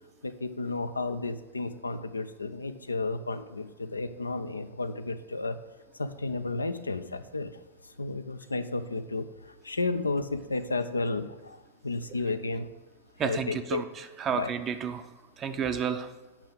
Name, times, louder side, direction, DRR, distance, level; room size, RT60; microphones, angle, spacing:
voice 1, 0.2-5.6 6.0-7.5 8.0-11.6 11.8-12.7 13.2-13.8 14.3-14.5, left 3 dB, 80° left, 12 dB, 0.4 m, -32 dB
voice 2, 13.2-15.1 15.4-16.1, right 7 dB, 30° right, 8 dB, 0.4 m, -31 dB
8.6 x 5.7 x 3.8 m, 1.1 s
figure-of-eight pair, 90°, 0 cm